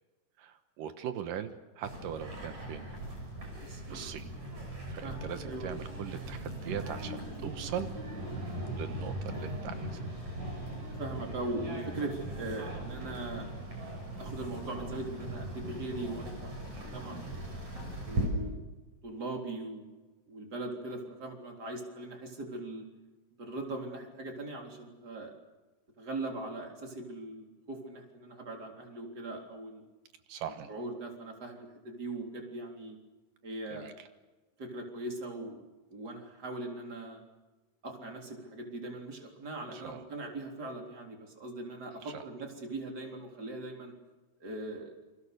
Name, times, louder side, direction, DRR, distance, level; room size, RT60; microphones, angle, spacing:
voice 1, 0.4-2.9 3.9-4.3 4.9-7.9 8.3-10.1 30.3-30.7 33.7-34.1 39.7-40.0 42.0-42.2, right 9 dB, 80° right, 8 dB, 2.8 m, -40 dB
sound 1, 1.8-18.3, right 1 dB, 60° right, 8.1 m, -39 dB
voice 2, 3.6-4.2 5.0-5.7 11.0-13.5 14.2-17.5 18.1-18.6 19.0-19.9 20.3-22.8 23.4-25.3 26.0-29.8 30.7-33.0 33.4-33.9 34.6-35.6 35.9-37.2 37.8-43.9 44.4-45.0, right 2 dB, 30° right, 2 dB, 4.1 m, -40 dB
28.5 x 26.0 x 6.8 m, 1.2 s
omnidirectional pair, 3.9 m